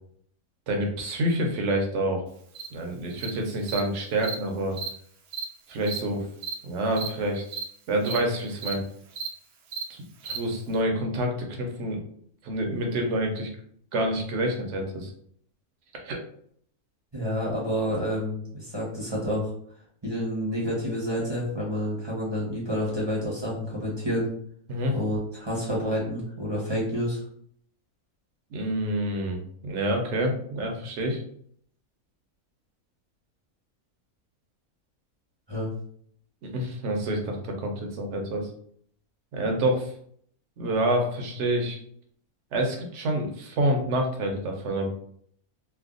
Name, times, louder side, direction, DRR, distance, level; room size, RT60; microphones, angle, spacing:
voice 1, 0.7-2.2 2.7-4.7 5.7-6.3 6.6-7.6 7.9-8.8 9.9-12.0 12.4-13.5 13.9-15.1 16.0-16.2 24.7-24.9 28.5-31.2 36.4-38.5 39.3-39.9 40.6-41.8 42.5-44.9, right 1 dB, 60° right, 2 dB, 0.9 m, -27 dB
Cricket, 2.6-2.7 3.2-3.3 3.7-3.8 4.2-4.4 4.7-4.9 5.3-5.5 5.8-6.0 6.4-6.5 6.9-7.1 7.5-7.6 8.0-8.2 8.6-8.7 9.1-9.3 9.7-9.8 10.2-10.4, right 6 dB, 85° right, 1.1 m, -33 dB
voice 2, 17.1-19.5 20.0-24.3 24.9-27.2 35.5-35.7, equal, 25° right, -5 dB, 0.6 m, -29 dB
3.3 x 2.1 x 2.4 m, 0.63 s
omnidirectional pair, 1.5 m